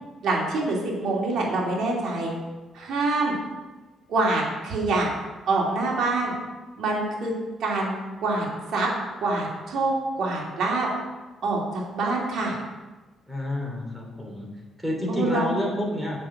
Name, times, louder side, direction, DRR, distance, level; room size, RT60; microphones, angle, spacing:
voice 1, 0.2-2.3 2.7-3.3 4.1-5.1 5.5-6.3 6.8-7.3 7.6-7.9 8.2-8.9 9.2-10.9 11.4-12.6 15.1-15.5, right 2 dB, 70° right, -3 dB, 3.0 m, -25 dB
voice 2, 13.3-14.5 14.8-16.2, left 1 dB, 5° right, -1 dB, 3.0 m, -29 dB
7.6 x 6.3 x 7.2 m, 1.2 s
cardioid pair, 90°, 0 cm